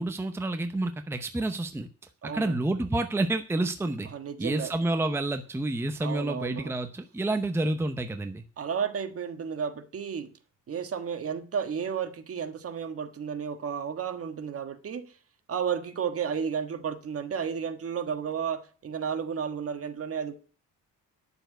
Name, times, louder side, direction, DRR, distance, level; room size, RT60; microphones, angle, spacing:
voice 1, 0.0-1.9 2.2-4.1 4.4-8.4, right 2 dB, 5° right, 0.7 m, -29 dB
voice 2, 2.2-2.7 4.1-4.7 6.0-6.7 8.6-10.3 10.7-15.1 15.5-20.3, right 7 dB, 45° right, 1.5 m, -32 dB
10.5 x 6.9 x 9.1 m
cardioid pair, 160°, 33 cm